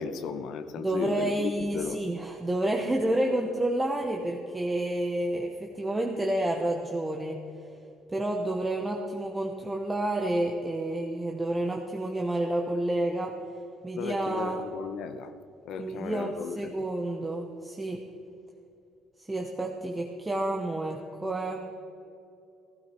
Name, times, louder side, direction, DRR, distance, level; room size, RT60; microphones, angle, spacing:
voice 1, 0.0-2.0 14.0-15.3 15.6-16.8, left 6 dB, 60° left, 11 dB, 0.9 m, -35 dB
voice 2, 0.8-7.4 8.1-13.3 13.8-14.6 15.8-18.0 19.2-21.7, right 1 dB, 10° right, 2 dB, 1.0 m, -29 dB
16.0 x 15.0 x 4.5 m, 2.6 s
cardioid pair, 155°, 0 cm